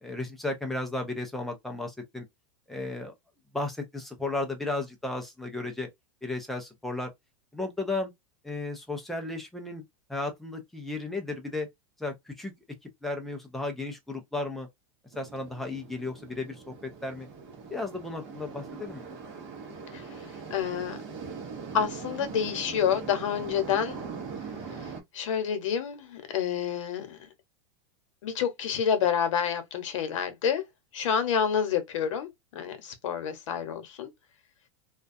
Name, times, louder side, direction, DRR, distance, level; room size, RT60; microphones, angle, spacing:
voice 1, 0.0-2.3 2.7-3.1 3.5-5.9 6.2-7.1 7.5-8.1 8.4-9.8 10.1-11.7 12.0-12.5 13.0-14.7 15.1-17.3 17.7-19.1, left 2 dB, ahead, 0.3 m, -34 dB
sound 1, 15.1-25.0, right 5 dB, 35° right, 0.9 m, -41 dB
voice 2, 20.5-21.0 21.7-24.0 25.1-27.3 28.2-30.6 30.9-34.1, left 8 dB, 85° left, 0.8 m, -28 dB
2.4 x 2.2 x 2.5 m
supercardioid pair, 170°, 16 cm